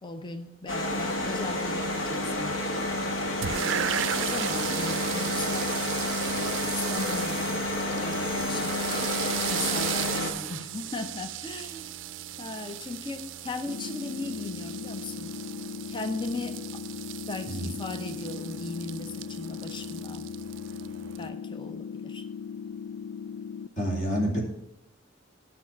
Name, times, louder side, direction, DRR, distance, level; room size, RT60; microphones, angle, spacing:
voice 1, 0.0-3.1 3.6-5.7 6.7-7.7 8.0-9.0 9.5-11.9 12.4-15.4 15.9-16.8 17.2-20.3 21.2-22.2, left 3 dB, 25° left, 7 dB, 0.6 m, -38 dB
sound 1, 0.7-10.3, left 1 dB, 80° left, 1.7 m, -30 dB
sound 2, 3.4-21.3, right 11 dB, 70° right, 0.4 m, -36 dB
sound 3, 13.7-23.7, left 7 dB, 65° left, 0.3 m, -38 dB
voice 2, 23.8-24.4, equal, 40° left, -1 dB, 2.5 m, -28 dB
8.9 x 5.8 x 7.1 m, 0.80 s
head